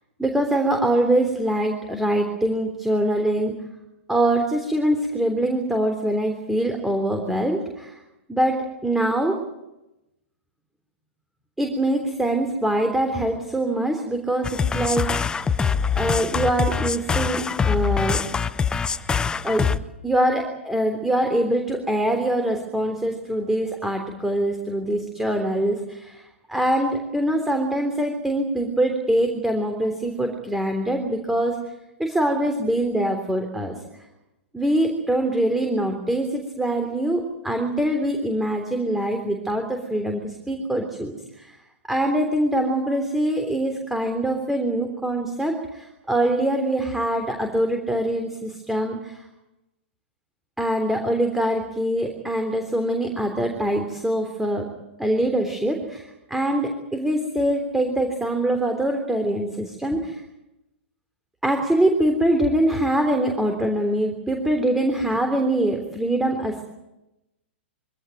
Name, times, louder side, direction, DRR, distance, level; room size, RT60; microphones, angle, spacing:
voice 1, 0.2-3.6 4.1-8.0 8.3-9.4 11.6-15.1 15.4-15.5 15.9-18.2 19.4-19.7 20.0-26.2 26.5-31.6 32.0-33.7 34.5-41.5 41.9-49.2 50.6-54.7 55.0-60.2 61.4-66.6, right 1 dB, 5° right, 4 dB, 3.4 m, -23 dB
sound 1, 14.4-19.8, left 6 dB, 10° left, 0.9 m, -24 dB
24.5 x 17.5 x 9.2 m, 0.93 s
hypercardioid pair, 115°, 7 cm